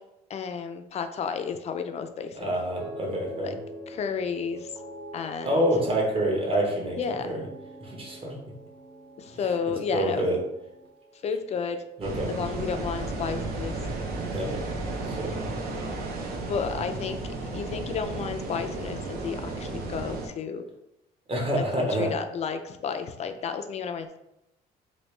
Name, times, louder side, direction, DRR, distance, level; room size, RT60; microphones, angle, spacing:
voice 1, 0.3-2.5 3.4-3.5 3.9-4.7 5.1-5.6 7.0-7.3 9.2-10.2 11.2-11.9 12.3-13.8 16.4-17.2 17.5-20.6 21.6-24.2, left 6 dB, 40° left, 8 dB, 0.3 m, -32 dB
voice 2, 2.3-3.5 5.4-7.4 7.8-8.3 9.9-10.4 12.0-12.3 14.2-14.7 15.0-15.5 21.3-22.2, right 1 dB, 35° right, 0 dB, 1.0 m, -27 dB
sound 1, 2.7-13.1 13.4-14.0, equal, 85° right, 1.1 m, -44 dB
sound 2, 12.0-20.3, right 2 dB, 65° right, 0.7 m, -33 dB
3.1 x 2.8 x 3.1 m, 0.85 s
cardioid pair, 110°, 17 cm